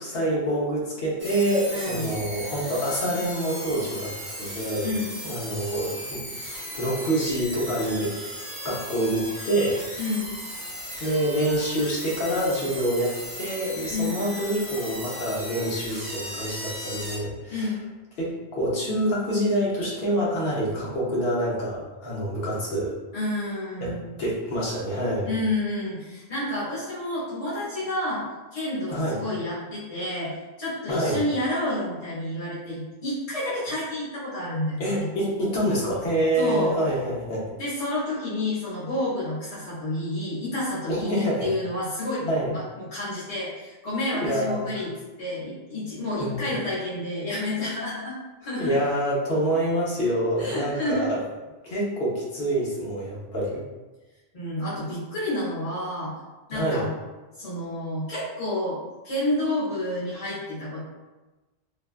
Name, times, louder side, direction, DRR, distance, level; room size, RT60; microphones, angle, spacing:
voice 1, 0.0-4.9 5.2-6.2 6.7-8.4 8.6-9.8 11.0-17.7 18.2-23.0 23.8-25.3 28.9-29.2 30.9-31.2 34.8-37.4 40.9-41.5 42.3-42.5 44.1-44.7 46.2-46.6 48.6-51.2 51.6-53.6 56.5-56.9, right 1 dB, 70° left, -4 dB, 0.9 m, -26 dB
sound 1, 1.2-17.2, equal, 5° right, 0.8 m, -36 dB
voice 2, 1.7-2.0 4.8-5.2 10.0-10.3 13.9-14.2 17.5-17.8 23.1-24.2 25.2-28.2 28.5-35.1 36.3-36.7 37.6-44.9 45.2-48.1 48.4-48.7 50.4-51.1 54.3-56.1 56.5-56.9 57.4-60.8, left 1 dB, 40° left, -10 dB, 0.8 m, -29 dB
2.5 x 2.2 x 2.3 m, 1.2 s
omnidirectional pair, 1.1 m